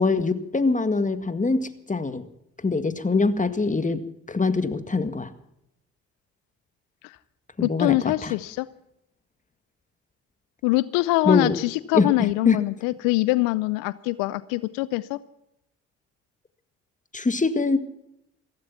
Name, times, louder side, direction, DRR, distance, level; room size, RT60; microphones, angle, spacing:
voice 1, 0.0-2.3 2.6-4.0 4.3-5.3 7.6-8.3 11.2-11.6 11.9-12.6 17.1-17.8, left 3 dB, 25° left, 11 dB, 1.9 m, -23 dB
voice 2, 7.6-8.7 10.6-15.2, left 19 dB, 85° left, 18 dB, 0.6 m, -24 dB
16.5 x 15.0 x 5.8 m, 0.80 s
hypercardioid pair, 45°, 33 cm